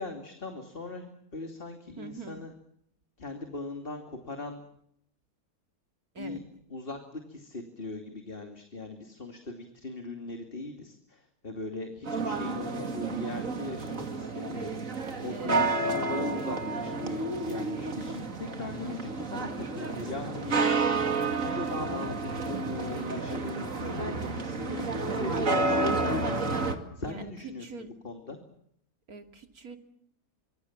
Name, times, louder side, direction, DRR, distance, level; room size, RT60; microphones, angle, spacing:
voice 1, 0.0-2.5 3.2-4.6 6.2-6.4 6.7-20.6 21.4-26.6 27.0-28.4, left 2 dB, 40° left, 5 dB, 2.8 m, -39 dB
voice 2, 2.0-2.4 6.1-6.5 15.3-15.6 27.0-27.9 29.1-29.8, right 4 dB, 85° right, 6 dB, 3.0 m, -43 dB
sound 1, 12.0-26.7, right 3 dB, 65° right, 2.8 m, -30 dB
27.0 x 25.5 x 7.3 m, 0.71 s
omnidirectional pair, 1.5 m